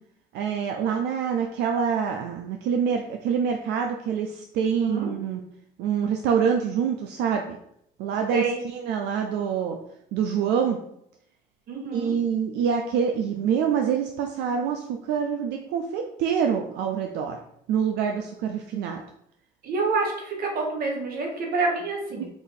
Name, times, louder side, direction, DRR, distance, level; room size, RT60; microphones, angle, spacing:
voice 1, 0.3-5.4 5.8-7.6 8.0-9.8 10.1-10.8 11.9-17.4 17.7-19.0, right 7 dB, 85° right, 3 dB, 0.4 m, -26 dB
voice 2, 4.8-5.1 8.3-8.6 11.7-12.1 19.6-22.3, right 4 dB, 60° right, 0 dB, 1.4 m, -27 dB
5.0 x 2.7 x 3.9 m, 0.75 s
cardioid pair, 110°, 17 cm